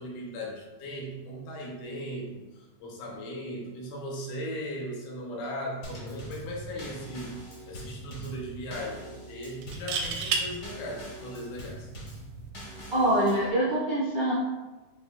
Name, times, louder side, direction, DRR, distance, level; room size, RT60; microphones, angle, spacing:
voice 1, 0.0-11.9, equal, 75° left, -2 dB, 2.2 m, -38 dB
Drum kit / Snare drum / Bass drum, 5.8-13.5, right 1 dB, 60° left, 1.0 m, -43 dB
sound 1, 6.8-7.0 7.4-7.5 9.6-10.5 12.3-12.5, right 5 dB, 85° right, 2.2 m, -29 dB
voice 2, 12.9-14.3, right 1 dB, 70° right, -9 dB, 0.8 m, -24 dB
7.0 x 2.7 x 2.3 m, 1.1 s
omnidirectional pair, 3.8 m